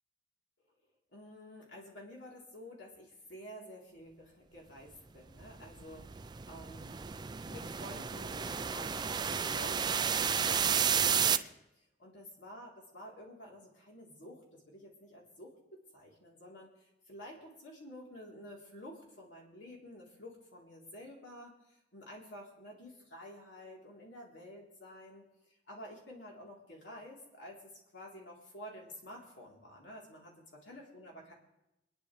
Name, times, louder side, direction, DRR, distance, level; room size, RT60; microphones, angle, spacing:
voice 1, 1.1-7.0 7.5-30.3 30.6-31.3, left 1 dB, 75° left, -2 dB, 3.4 m, -51 dB
sound 1, 5.4-11.4, right 7 dB, 25° right, 0.4 m, -32 dB
28.0 x 10.0 x 3.2 m, 0.91 s
head